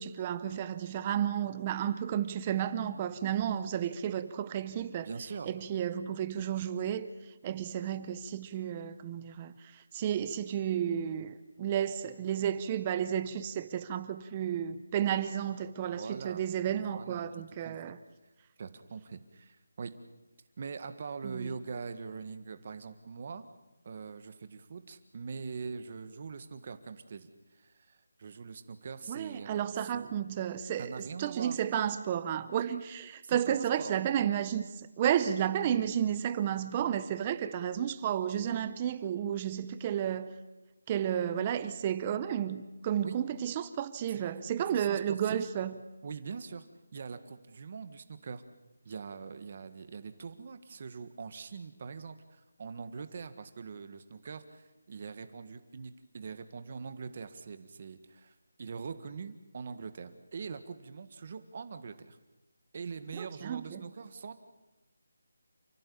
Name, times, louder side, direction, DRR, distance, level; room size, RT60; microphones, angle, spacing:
voice 1, 0.0-5.1 5.4-7.1 7.4-18.0 21.2-21.6 29.1-40.3 40.9-45.8 63.1-63.8, right 9 dB, 15° right, 0.7 m, -32 dB
voice 2, 5.0-5.5 15.8-16.4 16.9-17.3 17.6-17.8 18.6-19.9 20.6-23.5 23.8-29.7 29.9-30.1 30.8-31.6 33.2-33.9 43.0-43.2 44.1-45.4 46.0-46.6 46.9-48.4 48.8-62.2 62.7-64.4, right 5 dB, 30° right, 1.7 m, -43 dB
29.0 x 15.5 x 8.7 m
figure-of-eight pair, 175°, 0 cm